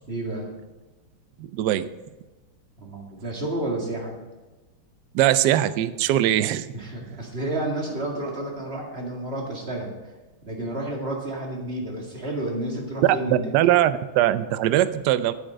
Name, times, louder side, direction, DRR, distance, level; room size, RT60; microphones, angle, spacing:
voice 1, 0.1-0.5 2.8-4.2 6.7-9.9 10.4-13.5, right 1 dB, 30° right, -1 dB, 2.1 m, -30 dB
voice 2, 1.4-1.9 5.1-6.7 13.0-15.3, right 13 dB, 80° right, 14 dB, 0.9 m, -21 dB
8.9 x 8.7 x 5.1 m, 1.2 s
omnidirectional pair, 2.3 m